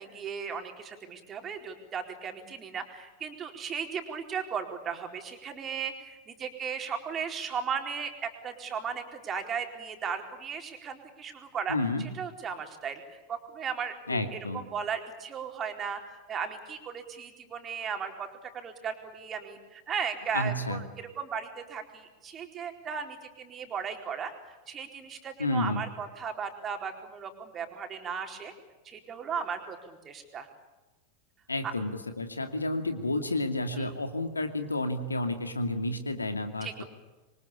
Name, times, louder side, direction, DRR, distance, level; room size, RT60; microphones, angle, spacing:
voice 1, 0.0-16.0 16.3-18.3 18.5-20.9 21.2-24.3 24.7-28.5 28.8-30.5 31.6-31.7 33.7-33.9 36.6-36.8, right 6 dB, 25° right, 4 dB, 4.3 m, -36 dB
voice 2, 11.7-12.1 14.1-14.6 20.3-20.8 25.4-25.8 31.5-36.8, left 2 dB, 80° left, 8 dB, 2.5 m, -30 dB
27.0 x 24.0 x 8.7 m, 1.2 s
figure-of-eight pair, 90°, 0 cm